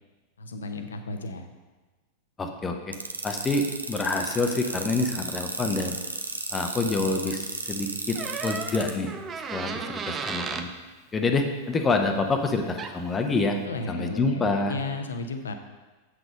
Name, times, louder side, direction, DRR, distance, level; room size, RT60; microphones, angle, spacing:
voice 1, 0.4-1.5 13.6-15.5, left 3 dB, 70° left, 7 dB, 0.8 m, -34 dB
voice 2, 2.4-3.0 3.2-6.0 6.5-9.1 9.5-10.7 11.1-13.6 13.9-14.7, left 3 dB, 20° left, 4 dB, 0.8 m, -27 dB
sound 1, 2.9-8.9, right 3 dB, 80° right, 0.7 m, -33 dB
Door, 8.1-10.7 12.5-12.6 12.8-13.2, right 5 dB, 25° right, 0.6 m, -34 dB
7.9 x 6.2 x 5.1 m, 1.3 s
figure-of-eight pair, 90°, 0 cm